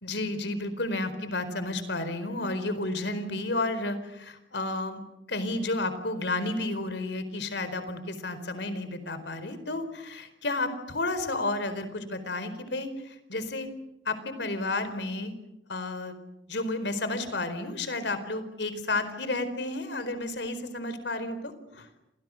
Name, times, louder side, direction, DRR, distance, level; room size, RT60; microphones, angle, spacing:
voice 1, 0.0-5.0 5.3-13.7 14.1-15.3 15.7-16.2 16.5-21.9, left 2 dB, 65° left, 11 dB, 4.4 m, -32 dB
30.0 x 27.0 x 6.5 m, 0.86 s
head